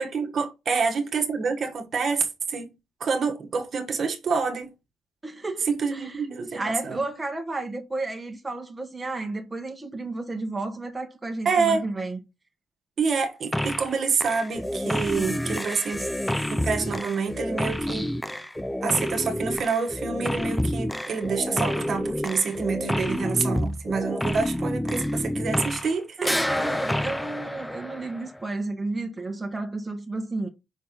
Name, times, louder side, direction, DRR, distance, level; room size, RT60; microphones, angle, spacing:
voice 1, 0.0-2.7 3.0-4.7 5.7-7.0 11.4-11.8 13.0-16.1 16.5-18.1 18.8-26.4, right 5 dB, 45° right, 1.3 m, -27 dB
voice 2, 5.2-12.2 26.2-30.5, right 2 dB, 15° right, 1.2 m, -32 dB
sound 1, 13.5-13.9 14.2-26.0 26.2-28.4, left 1 dB, 5° left, 0.4 m, -29 dB
5.6 x 4.3 x 5.2 m
cardioid pair, 140°, 0 cm